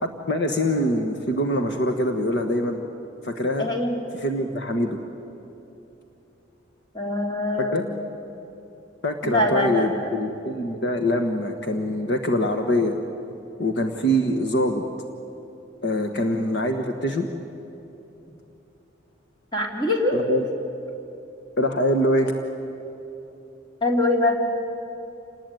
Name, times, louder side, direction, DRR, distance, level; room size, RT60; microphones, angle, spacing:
voice 1, 0.0-2.8 3.2-3.7 4.2-5.0 7.7-7.8 9.0-13.0 13.6-14.8 15.8-17.3 20.1-20.4 21.6-22.3, equal, 60° left, 5 dB, 1.4 m, -24 dB
voice 2, 3.6-3.9 6.9-7.9 9.2-10.1 15.9-16.2 19.5-20.2 23.8-24.4, left 1 dB, 20° left, 0 dB, 3.1 m, -23 dB
28.0 x 19.5 x 9.1 m, 3.0 s
head